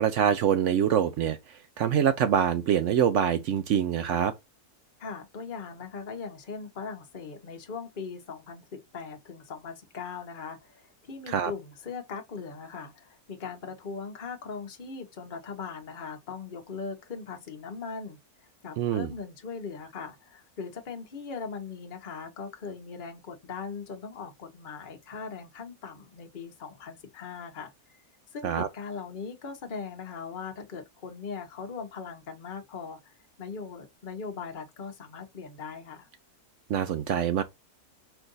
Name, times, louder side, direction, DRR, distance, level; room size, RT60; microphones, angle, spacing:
voice 1, 0.0-1.4 1.8-4.3 11.3-11.5 18.8-19.1 28.4-28.7 36.7-37.4, right 9 dB, 70° right, 0.7 m, -25 dB
voice 2, 5.0-18.2 18.6-27.7 28.3-33.1 33.4-36.1, left 5 dB, 35° left, 1.0 m, -40 dB
4.6 x 2.5 x 3.8 m
omnidirectional pair, 1.6 m